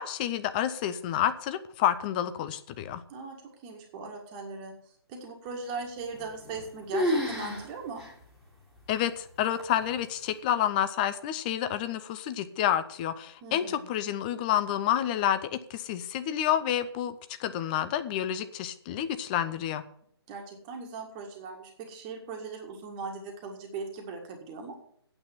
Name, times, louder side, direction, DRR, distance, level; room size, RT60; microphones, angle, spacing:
voice 1, 0.0-3.0 8.9-19.8, left 10 dB, 20° left, 11 dB, 0.6 m, -29 dB
voice 2, 3.1-4.7 5.1-8.1 13.4-13.9 20.3-24.7, right 4 dB, 20° right, 2 dB, 1.8 m, -39 dB
sound 1, 6.2-6.7 6.9-7.7 8.0-8.1 8.8-8.9 9.6-10.0, left 1 dB, ahead, 2.1 m, -29 dB
8.9 x 8.5 x 8.8 m, 0.66 s
figure-of-eight pair, 140°, 14 cm